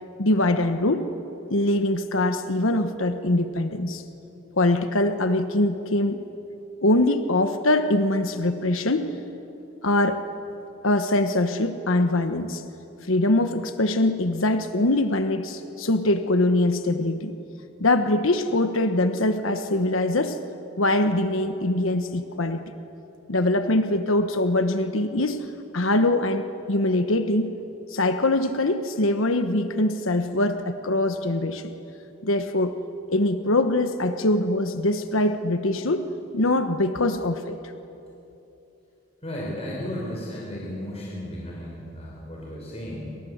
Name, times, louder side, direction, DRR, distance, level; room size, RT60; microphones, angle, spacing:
voice 1, 0.2-1.0 1.5-4.0 4.5-6.2 6.8-9.1 9.8-10.2 10.8-12.6 13.1-17.3 17.8-20.4 20.8-22.6 23.3-25.4 25.7-27.5 27.9-31.7 32.2-32.7 33.1-36.1 36.3-37.6, left 1 dB, 85° left, 8 dB, 1.3 m, -23 dB
voice 2, 39.2-43.2, left 1 dB, 30° left, -4 dB, 5.5 m, -34 dB
28.5 x 25.5 x 8.1 m, 2.9 s
head